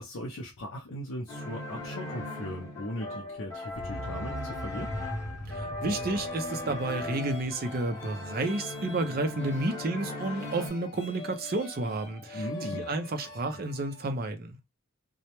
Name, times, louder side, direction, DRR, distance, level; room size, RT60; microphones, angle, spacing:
voice 1, 0.0-5.0 12.3-12.9, left 1 dB, 70° left, 0.5 m, -38 dB
sound 1, 1.3-10.7, left 2 dB, 15° left, 0.8 m, -39 dB
sound 2, 3.7-8.4 8.7-8.8, equal, 80° right, 0.7 m, -40 dB
voice 2, 5.5-14.6, right 2 dB, 45° right, 0.4 m, -31 dB
sound 3, 5.8-14.1, left 3 dB, 50° left, 0.9 m, -45 dB
2.1 x 2.0 x 2.9 m
head